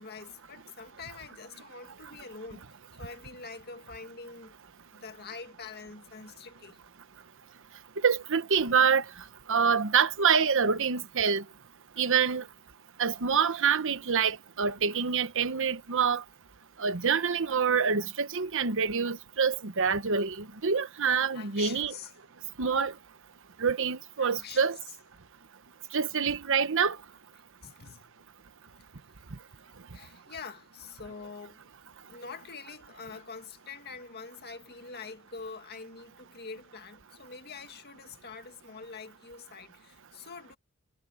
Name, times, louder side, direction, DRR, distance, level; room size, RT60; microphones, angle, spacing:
voice 1, 0.0-4.5 4.9-6.8 21.3-22.1 24.2-24.9 27.6-28.1 29.9-31.6 32.1-40.6, left 5 dB, 45° left, 2.0 m, -45 dB
voice 2, 8.0-9.0 9.5-11.4 12.0-12.4 13.0-16.2 16.8-21.9 22.6-22.9 23.6-24.8 25.9-27.0, right 6 dB, 60° right, 1.0 m, -26 dB
head